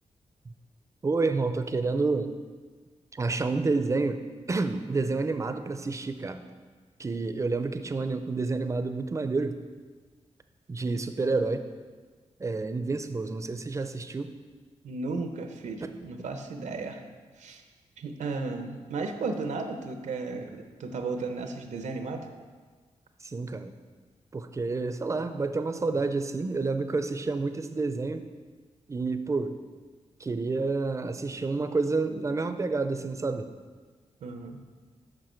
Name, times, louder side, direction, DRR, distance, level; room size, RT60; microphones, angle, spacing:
voice 1, 1.0-2.3 3.1-4.2 4.5-6.4 7.0-9.6 10.7-11.7 12.4-14.3 15.8-15.9 23.2-23.7 24.3-28.2 28.9-29.6 30.2-33.5, right 3 dB, 25° right, 9 dB, 0.4 m, -29 dB
voice 2, 14.8-17.0 17.4-17.6 18.0-22.3 34.2-34.6, right 3 dB, 90° right, 6 dB, 0.7 m, -34 dB
7.6 x 5.9 x 4.4 m, 1.5 s
wide cardioid pair, 130°, 12 cm